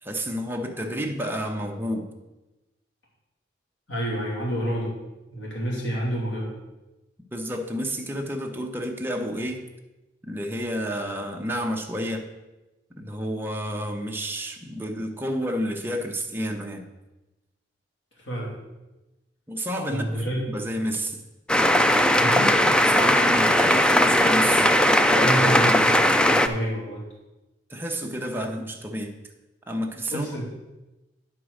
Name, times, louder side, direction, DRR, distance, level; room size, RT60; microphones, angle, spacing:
voice 1, 0.0-2.1 7.3-9.6 10.3-12.3 13.0-16.9 19.5-21.2 22.9-25.3 25.6-25.9 27.7-29.1 29.7-30.4, equal, 10° right, 2 dB, 0.9 m, -30 dB
voice 2, 3.9-5.0 5.3-6.6 18.2-18.5 19.9-20.6 22.2-22.6 25.2-27.0 30.1-30.4, right 1 dB, 85° left, -3 dB, 2.9 m, -29 dB
sound 1, 21.5-26.5, left 1 dB, 5° left, 0.4 m, -18 dB
10.0 x 4.7 x 6.4 m, 1.0 s
head